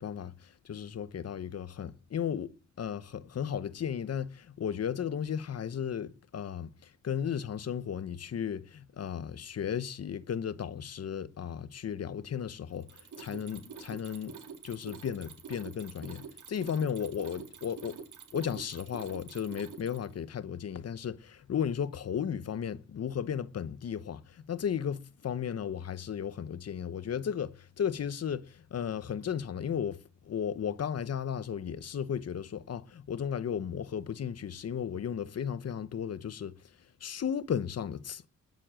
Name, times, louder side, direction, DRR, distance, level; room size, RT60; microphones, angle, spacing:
voice 1, 0.0-14.3 14.6-18.0 18.3-30.0 30.2-36.5 37.0-38.3, left 8 dB, 55° left, 1.0 m, -35 dB
Mechanisms, 12.7-20.2, right 6 dB, 85° right, 3.9 m, -47 dB
20.5 x 7.6 x 7.6 m
wide cardioid pair, 135°, 30 cm